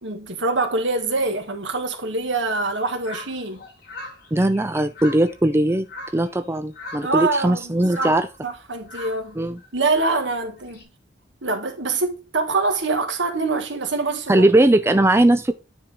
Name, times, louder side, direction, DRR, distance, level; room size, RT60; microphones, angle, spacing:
voice 1, 0.0-3.6 7.0-8.1 8.4-9.4 9.7-10.8 11.4-14.5, right 3 dB, 75° right, 1.7 m, -25 dB
sound 1, 3.0-6.5 6.7-7.3 7.7-10.8, left 2 dB, 55° left, 4.0 m, -40 dB
voice 2, 4.3-5.9 6.1-8.3 9.4-9.6 14.3-15.5, right 1 dB, 15° right, 0.4 m, -19 dB
9.7 x 4.5 x 3.6 m
head